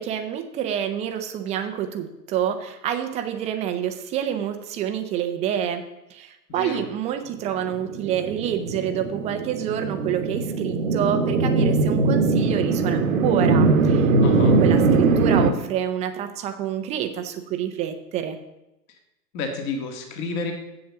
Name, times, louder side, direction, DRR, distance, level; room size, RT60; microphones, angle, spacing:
voice 1, 0.0-5.8 6.1-18.4, right 9 dB, 15° right, 7 dB, 0.6 m, -28 dB
voice 2, 6.5-6.8 14.2-14.6 19.3-20.5, left 4 dB, 35° left, 5 dB, 1.9 m, -30 dB
sound 1, 7.8-15.5, right 3 dB, 55° right, 1.1 m, -21 dB
7.6 x 7.2 x 7.2 m, 0.93 s
hypercardioid pair, 120°, 50 cm